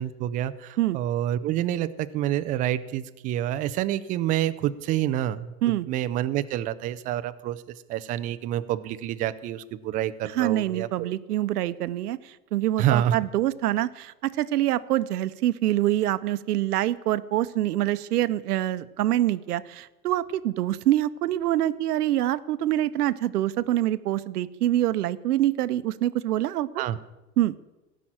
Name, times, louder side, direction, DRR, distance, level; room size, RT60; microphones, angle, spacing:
voice 1, 0.0-7.6 7.9-11.1 12.8-13.1 26.8-27.0, right 12 dB, 20° right, 12 dB, 0.3 m, -28 dB
voice 2, 10.4-26.8 27.4-27.5, right 13 dB, 90° right, 14 dB, 0.8 m, -25 dB
16.0 x 6.1 x 8.9 m, 1.0 s
supercardioid pair, 130°, 45 cm